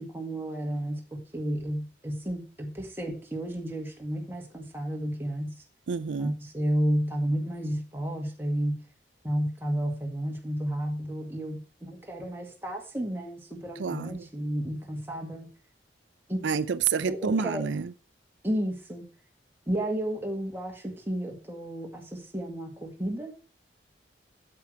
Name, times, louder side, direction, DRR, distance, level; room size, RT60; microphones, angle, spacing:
voice 1, 0.0-5.5 6.2-8.8 9.2-15.5 16.3-16.6 17.1-17.7 18.4-19.0 19.7-23.4, equal, 10° right, 1.8 m, -32 dB
voice 2, 5.9-6.4 13.8-14.3 16.4-17.9, right 6 dB, 85° right, 0.5 m, -28 dB
8.4 x 8.0 x 4.7 m
head